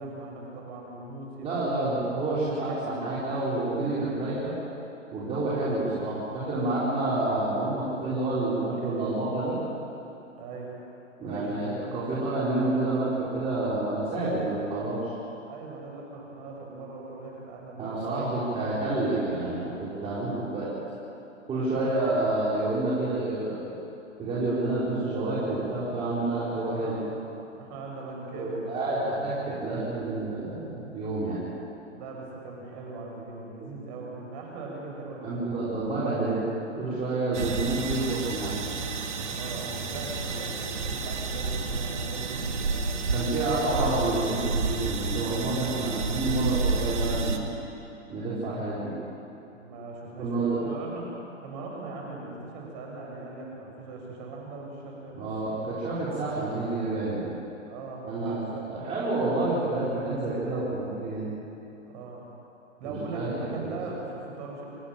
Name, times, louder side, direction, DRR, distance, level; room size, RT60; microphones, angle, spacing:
voice 1, 0.0-1.6 2.4-3.0 10.4-10.7 11.3-11.9 15.5-18.4 21.7-22.0 26.8-29.0 31.9-35.6 39.3-42.9 49.4-51.2 51.4-55.7 57.7-58.7 61.9-62.3 62.8-64.7, right 3 dB, 35° right, -1 dB, 7.0 m, -40 dB
voice 2, 1.4-4.5 5.1-9.6 11.2-15.1 17.8-20.7 21.5-23.7 24.2-27.0 28.3-31.4 35.2-36.4 36.8-38.5 43.1-47.5 48.1-48.9 50.2-50.6 55.1-57.2 58.1-61.3 62.8-63.7, right 2 dB, 15° right, -9 dB, 4.8 m, -29 dB
sound 1, 37.3-47.4, right 3 dB, 65° right, 2.5 m, -30 dB
27.0 x 14.0 x 9.1 m, 2.8 s
hypercardioid pair, 140°, 39 cm